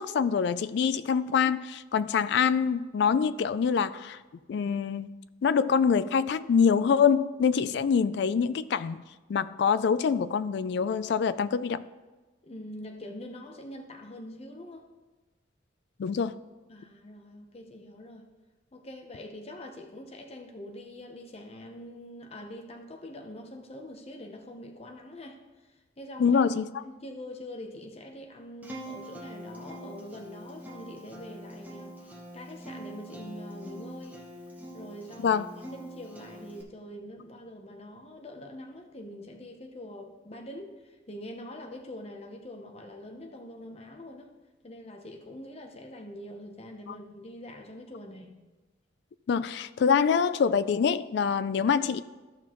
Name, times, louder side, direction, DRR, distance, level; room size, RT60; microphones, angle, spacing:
voice 1, 0.0-4.2 4.5-5.1 5.4-9.0 9.3-11.8 16.0-16.4 26.2-26.7 35.2-35.5 49.3-52.0, left 6 dB, 60° left, 15 dB, 0.3 m, -25 dB
voice 2, 12.4-14.9 16.7-18.3 18.7-26.4 26.8-34.2 34.7-44.3 44.6-48.4, left 1 dB, 30° left, 3 dB, 0.7 m, -44 dB
Acoustic guitar, 28.6-36.6, right 1 dB, 10° right, 1.0 m, -44 dB
13.5 x 6.0 x 3.0 m, 1.2 s
head